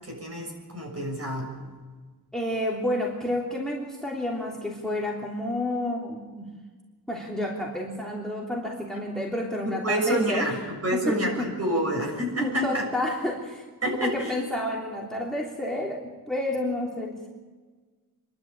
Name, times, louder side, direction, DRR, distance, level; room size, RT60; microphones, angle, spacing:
voice 1, 0.0-1.5 9.7-12.9 13.8-14.3, equal, 40° right, 1 dB, 7.0 m, -28 dB
voice 2, 2.3-6.5 7.1-10.5 10.9-11.5 11.9-12.0 12.4-13.7 14.0-17.3, left 1 dB, ahead, -2 dB, 3.3 m, -30 dB
26.5 x 12.5 x 8.8 m, 1.4 s
wide cardioid pair, 105°, 37 cm